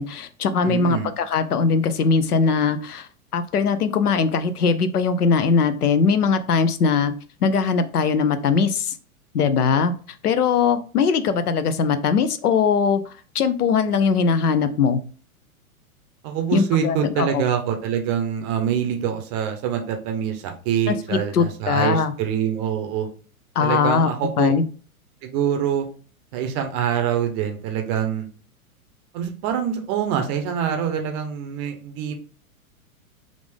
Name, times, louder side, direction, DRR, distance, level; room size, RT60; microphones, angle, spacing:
voice 1, 0.0-7.1 7.4-9.0 9.3-9.9 10.2-15.0 16.5-17.4 20.9-22.1 23.6-24.1 24.4-24.6, left 5 dB, 90° left, 11 dB, 0.6 m, -21 dB
voice 2, 0.6-1.1 16.2-23.1 23.6-24.5 25.2-25.9 26.3-28.3 29.1-32.1, right 8 dB, 30° right, 5 dB, 0.5 m, -25 dB
3.5 x 2.5 x 3.4 m, 0.39 s
hypercardioid pair, 110°, 44 cm